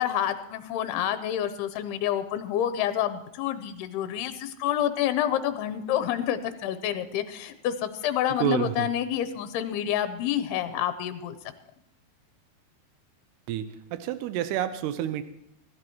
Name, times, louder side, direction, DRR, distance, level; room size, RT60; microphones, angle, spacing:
voice 1, 0.0-11.4, left 11 dB, 90° left, 10 dB, 2.7 m, -28 dB
voice 2, 8.4-8.9 13.5-13.7 13.9-15.2, right 11 dB, 90° right, 11 dB, 2.8 m, -28 dB
23.5 x 12.5 x 3.0 m, 0.77 s
omnidirectional pair, 4.7 m